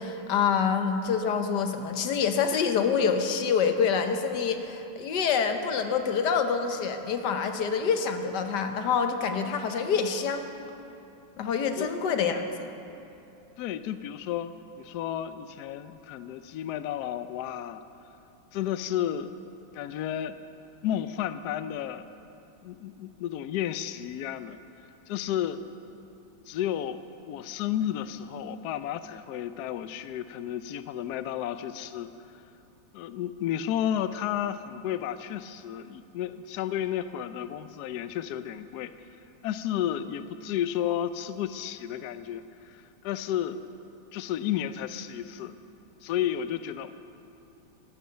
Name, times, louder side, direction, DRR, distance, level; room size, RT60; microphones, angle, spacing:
voice 1, 0.0-10.5 11.4-12.4, left 6 dB, 60° left, 6 dB, 1.4 m, -26 dB
voice 2, 13.6-17.8 18.5-19.3 19.7-20.4 20.8-22.1 22.6-24.6 25.1-25.6 26.5-27.0 27.3-32.1 32.9-38.9 39.4-43.6 44.1-45.5 46.0-46.9, left 10 dB, 90° left, 12 dB, 0.8 m, -32 dB
13.5 x 11.5 x 6.8 m, 2.8 s
omnidirectional pair, 2.3 m